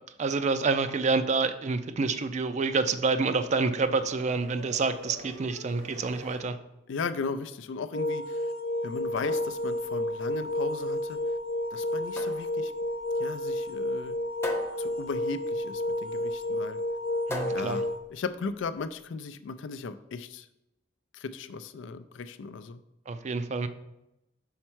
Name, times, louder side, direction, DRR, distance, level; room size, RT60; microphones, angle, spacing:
voice 1, 0.2-6.6 17.3-17.8 23.1-23.7, right 4 dB, 40° right, 11 dB, 0.4 m, -28 dB
sound 1, 1.8-6.5, right 1 dB, 75° right, 1.3 m, -47 dB
voice 2, 6.9-8.5 8.8-11.2 11.7-12.7 13.2-14.2 14.8-16.8 17.5-20.5 21.1-22.8, left 4 dB, 85° left, 12 dB, 0.4 m, -37 dB
sound 2, 7.9-18.0, left 1 dB, 55° left, 0.9 m, -31 dB
sound 3, 8.9-18.9, left 1 dB, 15° left, 0.7 m, -42 dB
5.7 x 4.3 x 4.5 m, 0.90 s
head